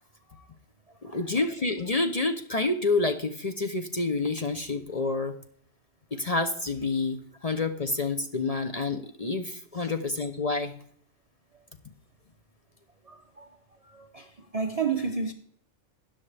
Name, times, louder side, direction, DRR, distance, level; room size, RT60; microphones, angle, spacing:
voice 1, 1.0-5.4 6.1-10.7, left 3 dB, 40° left, 0.7 m, -28 dB
voice 2, 13.1-13.5 13.8-15.3, right 5 dB, 40° right, 0.5 m, -32 dB
13.0 x 9.8 x 3.3 m
omnidirectional pair, 1.3 m